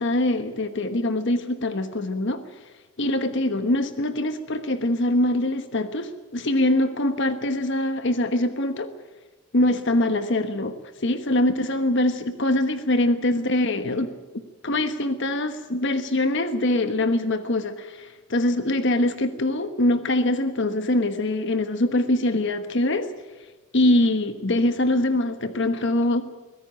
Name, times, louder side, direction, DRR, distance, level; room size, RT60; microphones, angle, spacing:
voice 1, 0.0-2.4 3.0-8.9 9.5-10.7 11.0-14.1 14.6-23.1 23.7-26.2, left 1 dB, 55° left, 9 dB, 1.3 m, -23 dB
23.5 x 16.5 x 9.0 m, 1.2 s
head